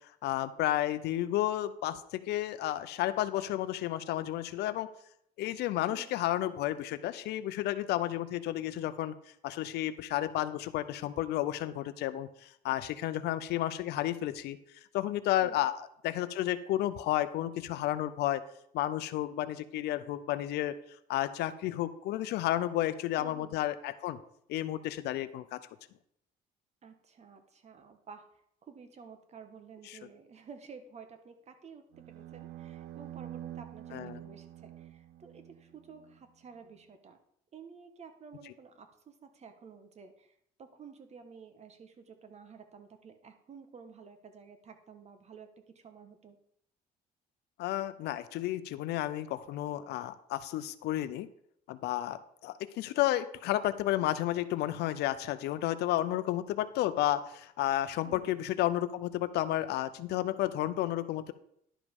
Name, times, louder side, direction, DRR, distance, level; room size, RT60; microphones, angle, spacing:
voice 1, 0.2-4.9 5.4-9.1 9.4-14.6 14.9-18.4 18.7-20.8 21.1-24.2 24.5-25.6 33.9-34.2 47.6-51.3 51.7-61.3, left 13 dB, 80° left, 13 dB, 0.6 m, -32 dB
voice 2, 23.2-23.6 26.8-28.3 28.6-37.2 37.5-46.4 58.0-58.3, right 6 dB, 40° right, 8 dB, 1.3 m, -52 dB
sound 1, 31.9-36.2, right 12 dB, 90° right, 0.5 m, -47 dB
11.0 x 5.1 x 5.3 m, 0.71 s
cardioid pair, 110°, 17 cm